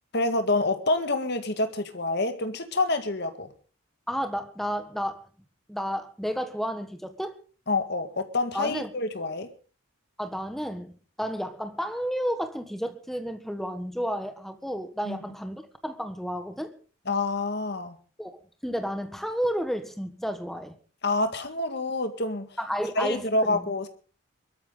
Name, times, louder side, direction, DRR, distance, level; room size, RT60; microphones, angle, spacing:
voice 1, 0.1-3.5 7.7-9.5 15.1-15.2 17.1-18.0 21.0-22.5 23.0-23.9, left 2 dB, 55° left, 8 dB, 1.9 m, -27 dB
voice 2, 4.1-5.2 5.7-7.3 8.5-8.9 10.2-10.9 11.2-16.7 18.2-18.3 18.6-20.7 22.6-23.6, equal, ahead, 8 dB, 1.4 m, -31 dB
23.5 x 13.0 x 3.9 m, 0.40 s
head